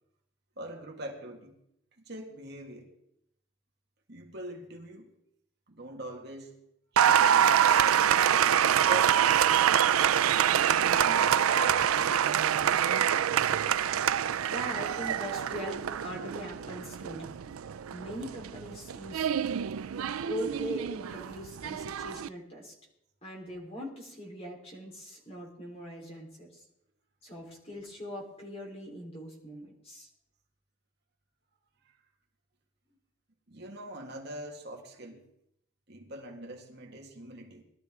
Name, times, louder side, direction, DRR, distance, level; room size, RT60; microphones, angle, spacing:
voice 1, 0.6-1.6 2.0-2.9 4.1-5.1 5.7-6.6 6.9-7.8 8.3-10.0 10.7-11.4 11.7-11.8 31.8-32.0 33.5-35.3 35.9-37.6, right 1 dB, 50° right, 2 dB, 1.9 m, -43 dB
Applause, 7.0-22.3, right 9 dB, 90° right, 0.4 m, -26 dB
voice 2, 14.5-17.3 17.9-19.3 20.2-22.7 23.2-26.6 27.2-30.1, equal, 30° left, -2 dB, 3.8 m, -41 dB
20.5 x 12.5 x 3.6 m, 0.78 s
head